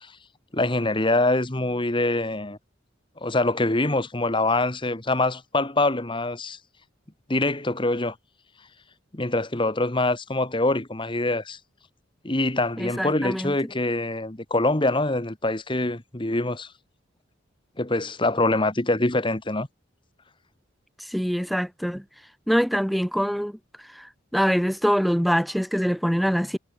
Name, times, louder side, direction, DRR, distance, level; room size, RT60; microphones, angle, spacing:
voice 1, 0.5-2.6 3.2-6.6 7.3-8.1 9.1-11.6 12.2-16.7 17.8-19.7, left 2 dB, 25° left, 1.5 m, -24 dB
voice 2, 12.8-13.5 21.0-22.0 22.5-26.6, equal, ahead, 0.8 m, -24 dB
head